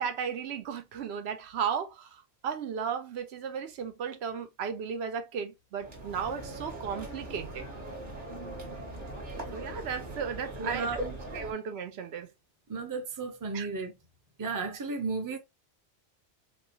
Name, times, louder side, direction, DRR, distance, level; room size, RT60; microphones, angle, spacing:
voice 1, 0.0-7.7 9.5-10.9 11.3-12.3 13.5-13.7, right 7 dB, 75° right, 0.8 m, -35 dB
sound 1, 5.8-11.5, right 1 dB, 45° right, 1.2 m, -40 dB
voice 2, 10.6-11.2 12.7-13.9 14.4-15.4, right 4 dB, 25° right, 0.5 m, -34 dB
4.1 x 2.2 x 2.7 m
omnidirectional pair, 1.1 m